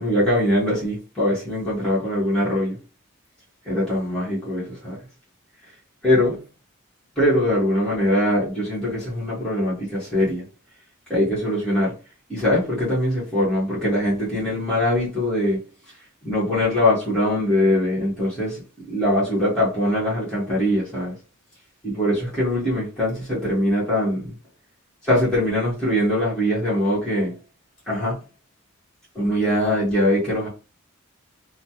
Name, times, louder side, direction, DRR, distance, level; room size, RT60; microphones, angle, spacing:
voice 1, 0.0-2.8 3.6-5.0 6.0-6.4 7.2-10.4 11.1-11.9 12.3-15.6 16.2-18.6 18.9-21.2 21.8-24.3 25.0-27.3 27.9-28.2 29.1-30.5, left 1 dB, 5° left, 1.3 m, -22 dB
3.1 x 2.2 x 2.8 m
head